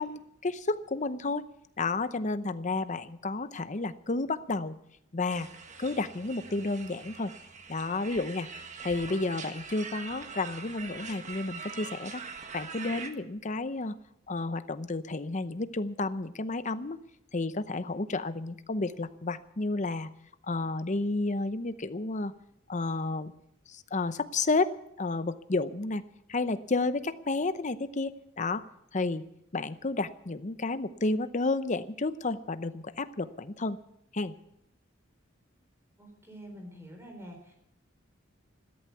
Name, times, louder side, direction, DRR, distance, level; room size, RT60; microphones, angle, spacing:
voice 1, 0.0-1.5 1.8-4.8 5.1-5.5 5.8-7.3 7.7-8.5 8.8-12.2 12.5-14.0 14.3-17.0 17.3-20.1 20.5-22.3 22.7-23.3 23.7-26.0 26.3-28.6 28.9-29.2 29.5-33.8 34.1-34.3, left 3 dB, 35° left, 13 dB, 0.7 m, -31 dB
sound 1, 5.3-13.1, right 5 dB, 35° right, 1.5 m, -43 dB
voice 2, 36.0-37.5, equal, 10° right, 3 dB, 4.2 m, -46 dB
14.5 x 13.0 x 6.9 m, 0.78 s
head